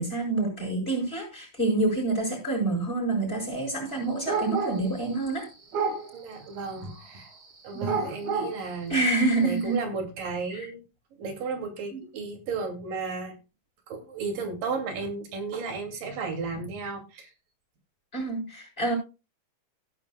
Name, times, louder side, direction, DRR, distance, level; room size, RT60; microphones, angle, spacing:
voice 1, 0.0-5.5 7.7-7.9 8.9-9.8 10.5-10.6 11.9-12.0 18.1-19.0, right 2 dB, 15° left, 7.0 m, -27 dB
sound 1, 4.3-5.4 5.7-6.2 6.6-9.6, right 5 dB, 55° right, 4.9 m, -31 dB
voice 2, 6.1-7.3 7.6-9.0 9.4-10.8 11.1-13.4 13.9-17.3, right 4 dB, 85° right, 4.2 m, -34 dB
16.5 x 10.5 x 2.3 m
omnidirectional pair, 3.8 m